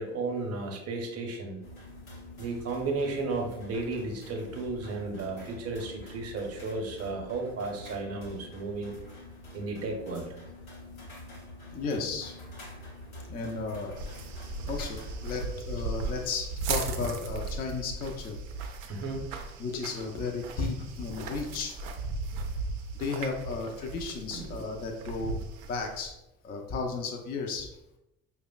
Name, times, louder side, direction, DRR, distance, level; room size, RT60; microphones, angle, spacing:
voice 1, 0.0-1.6 2.4-8.9 9.5-10.3 18.9-19.2 24.3-24.5, right 3 dB, 35° right, 2 dB, 0.8 m, -34 dB
sound 1, 1.6-15.6, left 1 dB, 90° left, 0.6 m, -46 dB
voice 2, 11.7-12.4 13.3-14.0 14.7-18.4 19.6-21.7 22.9-25.4 25.7-26.1 26.4-27.7, left 4 dB, 25° left, 2 dB, 0.4 m, -34 dB
sound 2, 14.0-26.1, right 3 dB, 70° right, 0.5 m, -37 dB
4.8 x 2.1 x 2.3 m, 0.89 s
figure-of-eight pair, 55°, 41 cm